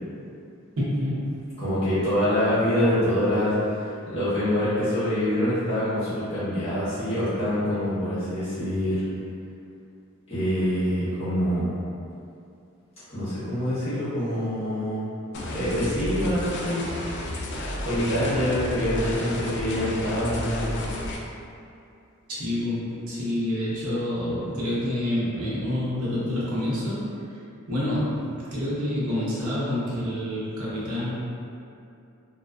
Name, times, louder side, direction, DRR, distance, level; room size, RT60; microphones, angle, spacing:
voice 1, 0.8-1.4 22.3-27.4 27.7-31.1, left 1 dB, 80° right, -8 dB, 0.7 m, -28 dB
voice 2, 1.6-9.0 10.3-11.7 13.1-15.0 15.5-16.9 17.8-20.8, equal, 30° left, -15 dB, 1.0 m, -25 dB
sound 1, 15.3-21.2, left 1 dB, 55° left, 0.3 m, -32 dB
2.4 x 2.3 x 2.2 m, 2.6 s
head